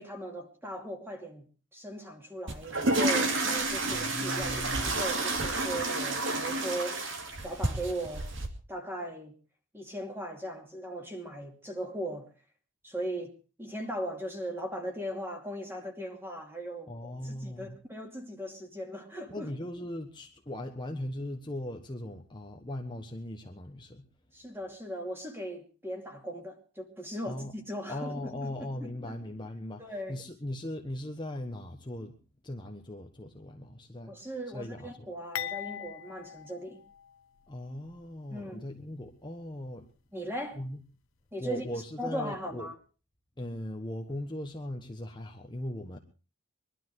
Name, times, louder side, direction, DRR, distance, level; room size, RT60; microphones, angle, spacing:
voice 1, 0.0-1.5 1.7-7.1 7.4-8.3 8.7-9.3 9.7-12.3 12.8-13.3 13.6-19.5 24.3-29.2 29.8-30.2 34.0-36.8 38.3-38.7 40.1-40.6 41.3-41.6 42.0-42.7, right 1 dB, 10° right, 4 dB, 2.5 m, -38 dB
sound 1, 2.5-8.5, right 2 dB, 60° right, 2.6 m, -30 dB
voice 2, 3.9-4.9 16.9-17.8 19.3-24.1 27.2-27.5 27.9-32.2 32.4-34.2 34.5-35.1 37.5-39.9 40.5-40.8 41.4-42.7 43.4-46.0, left 1 dB, 20° left, 3 dB, 1.3 m, -39 dB
sound 2, 35.3-37.5 37.9-38.0 38.9-39.0, left 9 dB, 70° left, 0.9 m, -40 dB
22.5 x 12.5 x 4.8 m, 0.35 s
head